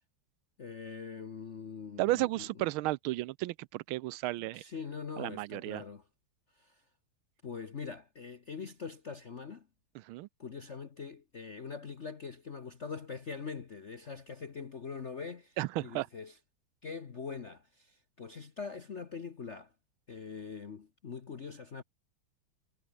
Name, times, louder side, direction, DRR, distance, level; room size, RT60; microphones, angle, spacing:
voice 1, 0.6-2.5 4.4-6.0 6.5-6.8 7.4-9.7 10.4-16.4 16.8-19.7 20.1-21.8, left 5 dB, 40° left, 1.2 m, -43 dB
voice 2, 2.0-4.6 5.2-5.8 10.1-10.3 15.6-16.1, right 17 dB, 80° right, 1.4 m, -33 dB
omnidirectional pair, 2.3 m